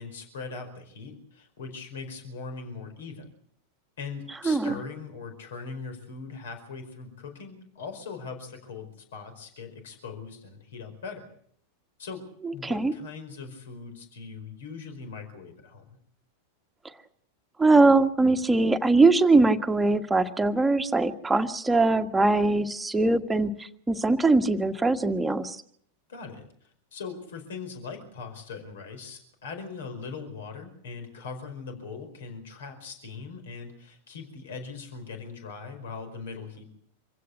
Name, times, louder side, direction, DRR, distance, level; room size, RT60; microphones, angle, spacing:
voice 1, 0.0-3.3 4.0-11.3 12.0-12.2 12.5-16.0 26.1-36.6, left 5 dB, 60° left, 7 dB, 4.8 m, -40 dB
voice 2, 17.6-25.6, right 3 dB, 10° right, 6 dB, 1.6 m, -22 dB
26.5 x 16.0 x 8.3 m, 0.66 s
figure-of-eight pair, 90°, 0 cm